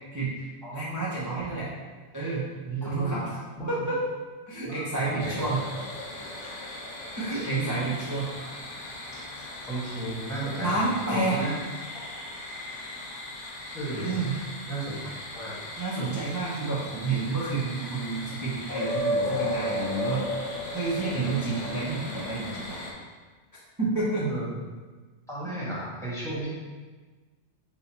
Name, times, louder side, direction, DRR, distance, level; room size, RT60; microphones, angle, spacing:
voice 1, 0.1-0.5 0.7-1.7 2.1-2.4 2.8-3.4 3.7-4.0 4.5-5.6 7.1-8.3 10.6-11.4 14.0-14.4 15.8-20.4 20.7-22.8 23.8-24.2, right 3 dB, 20° right, -8 dB, 0.5 m, -29 dB
voice 2, 2.6-3.1 3.6-3.7 4.6-5.6 6.1-6.3 7.3-7.7 9.7-10.8 11.1-11.5 11.9-12.2 13.7-14.1 14.7-15.5 24.1-24.5 25.3-26.5, right 2 dB, 5° left, -9 dB, 1.2 m, -34 dB
sound 1, 5.2-22.9, left 1 dB, 85° left, 1.2 m, -36 dB
5.6 x 2.7 x 2.8 m, 1.4 s
omnidirectional pair, 1.2 m